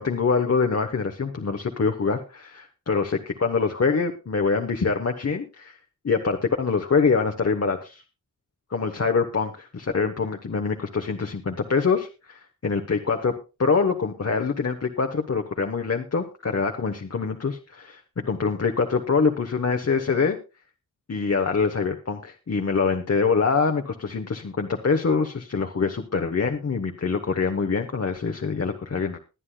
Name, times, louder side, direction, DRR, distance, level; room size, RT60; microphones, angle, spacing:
voice 1, 0.0-5.8 6.0-8.0 8.7-13.3 13.6-20.4 21.1-29.2, left 5 dB, 50° left, 4 dB, 1.2 m, -24 dB
21.5 x 9.7 x 2.3 m, 0.29 s
wide cardioid pair, 85°, 32 cm